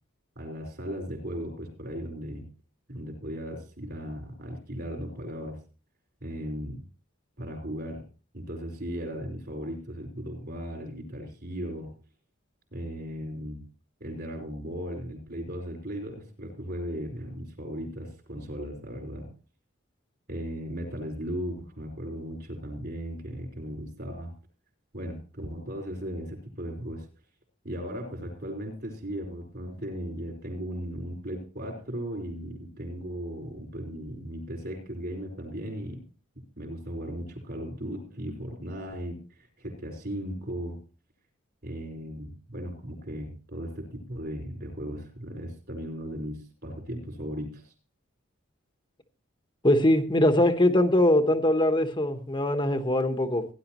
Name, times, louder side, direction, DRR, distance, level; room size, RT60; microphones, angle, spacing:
voice 1, 0.3-2.4 2.9-5.6 6.2-6.8 7.4-8.0 8.3-11.9 12.7-13.6 14.0-19.3 20.3-24.3 24.9-27.0 27.6-36.0 36.6-40.8 41.6-47.7, equal, 50° right, 4.8 m, -37 dB
voice 2, 49.6-53.5, left 1 dB, 20° left, 1.2 m, -22 dB
17.5 x 11.0 x 3.1 m
head